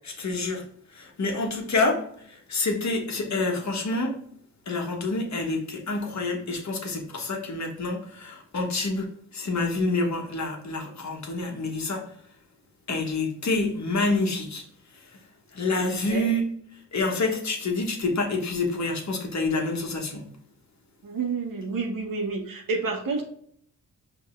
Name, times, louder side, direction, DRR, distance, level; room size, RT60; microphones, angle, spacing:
voice 1, 0.0-0.6 0.9-2.0 2.5-4.1 4.7-9.1 9.3-12.0 12.9-14.6 15.5-16.5 16.9-20.2, left 2 dB, 50° left, 2 dB, 1.4 m, -27 dB
voice 2, 21.0-23.2, right 4 dB, 65° right, 1 dB, 1.4 m, -29 dB
5.5 x 3.6 x 2.6 m, 0.63 s
supercardioid pair, 50°, 36 cm